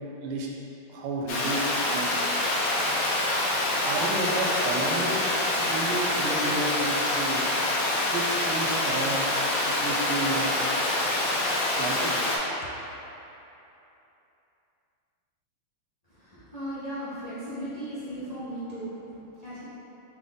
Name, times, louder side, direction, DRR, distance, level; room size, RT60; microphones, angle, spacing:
voice 1, 0.9-2.1 3.8-5.1 5.6-7.4 8.0-9.2 9.6-10.5 11.8-12.1, right 2 dB, 80° right, -2 dB, 1.5 m, -31 dB
Water, 1.3-12.4, left 1 dB, 85° left, 0.7 m, -26 dB
voice 2, 16.0-19.6, right 1 dB, 35° left, -14 dB, 0.6 m, -37 dB
3.8 x 3.7 x 3.6 m, 2.9 s
omnidirectional pair, 2.4 m